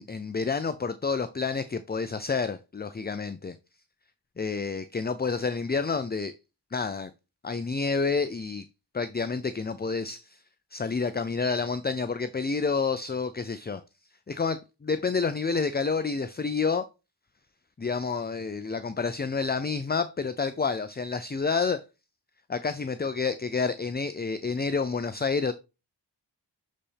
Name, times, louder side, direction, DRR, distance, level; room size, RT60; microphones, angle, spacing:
voice 1, 0.0-3.5 4.4-6.3 6.7-7.1 7.4-8.6 8.9-10.4 10.7-13.8 14.3-16.8 17.8-21.8 22.5-25.5, left 4 dB, 25° left, 0.5 m, -29 dB
7.6 x 4.2 x 3.4 m
cardioid pair, 40°, 43 cm